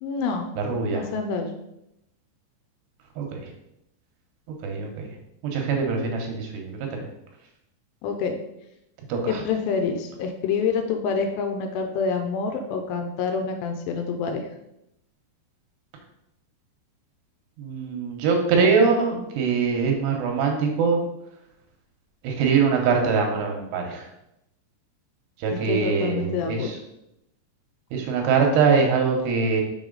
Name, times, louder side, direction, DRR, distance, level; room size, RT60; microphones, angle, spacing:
voice 1, 0.0-0.5 0.9-1.5 8.0-8.3 9.3-14.5 25.5-26.7, left 5 dB, 85° left, 5 dB, 2.6 m, -27 dB
voice 2, 0.6-1.0 3.2-3.4 4.6-4.9 5.4-7.0 9.1-9.4 17.6-21.0 22.2-24.1 25.4-26.7 27.9-29.6, right 5 dB, 75° right, 2 dB, 2.9 m, -23 dB
6.3 x 4.8 x 3.8 m, 0.83 s
omnidirectional pair, 5.1 m